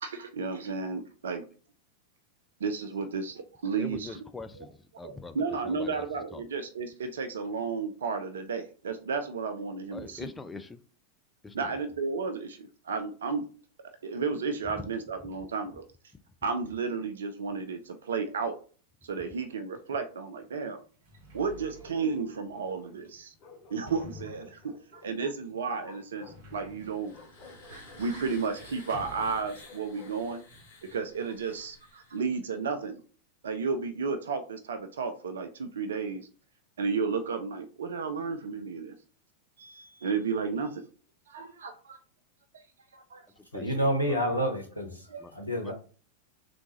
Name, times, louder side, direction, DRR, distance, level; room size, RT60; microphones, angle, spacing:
voice 1, 0.0-1.4 2.6-4.1 5.0-10.3 11.5-13.4 14.0-15.8 16.4-18.5 19.0-20.8 21.3-23.3 23.7-27.1 27.7-30.4 30.8-33.0 33.4-36.3 36.8-38.9 39.6-40.8 41.3-42.0 42.5-42.6 42.9-43.3 45.1-45.2, right 5 dB, 65° right, 0.3 m, -33 dB
voice 2, 3.8-6.1 6.3-6.4 9.9-10.8 11.4-11.8 43.4-44.5 45.2-45.3 45.6-45.7, left 3 dB, 10° left, 0.3 m, -43 dB
Sliding door, 20.1-20.2 20.8-30.0 30.2-31.1, equal, 45° right, 1.1 m, -52 dB
Bark, 21.4-23.0 23.4-25.1 25.8-26.8 27.1-28.1 28.8-30.5, left 3 dB, 40° left, 1.0 m, -52 dB
sound 1, 26.5-32.3, left 1 dB, 60° left, 1.2 m, -52 dB
voice 3, 43.5-45.7, equal, 90° left, 0.8 m, -29 dB
3.4 x 2.6 x 2.8 m
figure-of-eight pair, 90°, 0 cm